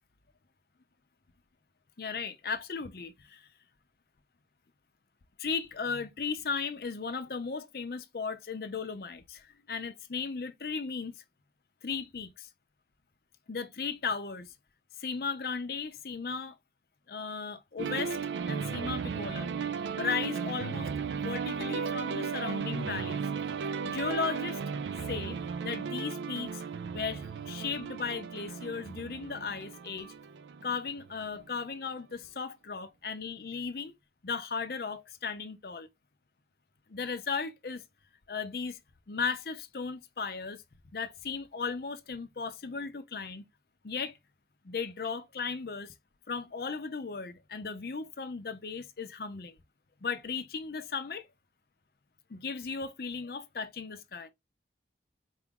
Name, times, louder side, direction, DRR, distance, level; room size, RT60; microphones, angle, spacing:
voice 1, 2.0-3.5 5.4-11.2 11.8-12.5 13.5-14.5 15.0-16.6 17.1-18.2 18.5-19.5 20.0-23.3 23.8-24.6 25.1-26.6 26.9-30.1 30.6-33.9 34.2-35.9 36.9-37.8 38.3-38.8 39.1-40.6 40.9-43.4 43.8-44.2 44.6-45.9 46.3-49.6 50.0-51.3 52.3-54.3, left 5 dB, 55° left, 0.5 m, -36 dB
sound 1, 17.8-31.5, right 6 dB, 90° right, 0.3 m, -35 dB
4.4 x 2.4 x 3.7 m
head